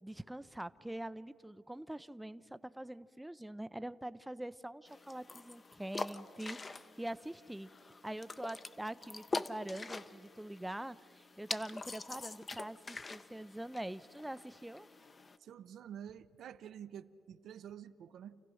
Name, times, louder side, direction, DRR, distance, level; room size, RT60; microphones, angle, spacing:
voice 1, 0.0-7.7 8.0-14.9, right 1 dB, 5° right, 14 dB, 0.4 m, -44 dB
sound 1, 4.9-15.4, left 3 dB, 30° left, 0.6 m, -45 dB
voice 2, 15.4-18.4, right 9 dB, 70° right, 13 dB, 0.5 m, -49 dB
28.5 x 15.0 x 6.3 m, 2.9 s
cardioid pair, 90°, 0 cm